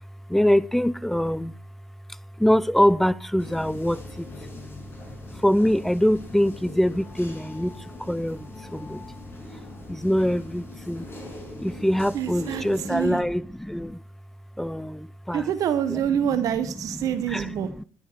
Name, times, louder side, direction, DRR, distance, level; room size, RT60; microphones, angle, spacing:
voice 1, 0.3-1.5 2.4-4.3 5.4-7.7 8.1-8.5 8.7-9.0 9.9-11.1 11.6-14.0 14.6-15.5 15.9-16.0 17.3-17.8, equal, 5° left, 0.5 m, -23 dB
sound 1, 3.4-13.1, left 2 dB, 35° left, 5.7 m, -41 dB
voice 2, 12.1-13.2 15.3-17.7, right 9 dB, 65° right, 0.9 m, -26 dB
11.5 x 9.9 x 4.4 m
supercardioid pair, 65°, 6 cm